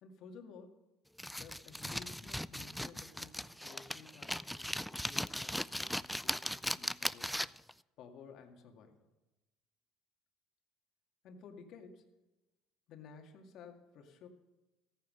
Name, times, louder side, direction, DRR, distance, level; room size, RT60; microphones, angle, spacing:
voice 1, 0.0-0.8 1.3-7.3 8.0-9.0 11.2-12.2 12.9-14.3, left 5 dB, 60° left, 4 dB, 2.1 m, -55 dB
sound 1, 1.2-7.7, equal, ahead, 0.3 m, -38 dB
14.0 x 9.4 x 6.5 m, 1.1 s
supercardioid pair, 100°, 0 cm